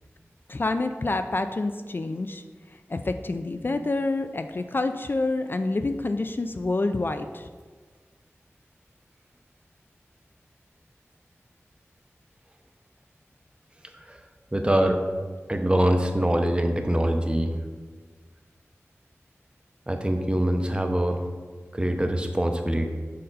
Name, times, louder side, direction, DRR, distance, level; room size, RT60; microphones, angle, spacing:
voice 1, 0.5-2.4 2.9-7.5, left 2 dB, 45° left, 8 dB, 0.4 m, -27 dB
voice 2, 14.5-15.0 15.5-17.5 19.9-21.2 21.7-22.9, right 1 dB, 20° right, 4 dB, 0.7 m, -24 dB
6.6 x 5.3 x 4.0 m, 1.4 s
wide cardioid pair, 65°, 5 cm